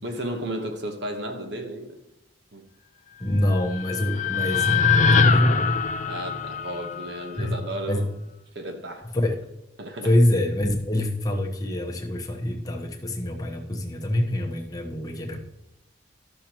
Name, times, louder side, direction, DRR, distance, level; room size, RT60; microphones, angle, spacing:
voice 1, 0.0-2.0 2.5-2.7 6.1-8.2 8.5-9.2 9.8-10.2, right 1 dB, 60° right, 5 dB, 1.1 m, -33 dB
voice 2, 3.2-5.6 7.4-7.6 7.9-8.0 9.1-9.3 10.0-15.4, left 1 dB, 20° left, 0 dB, 1.1 m, -25 dB
sound 1, 3.4-7.6, left 5 dB, 40° left, 0.4 m, -23 dB
12.0 x 6.5 x 3.0 m, 0.88 s
head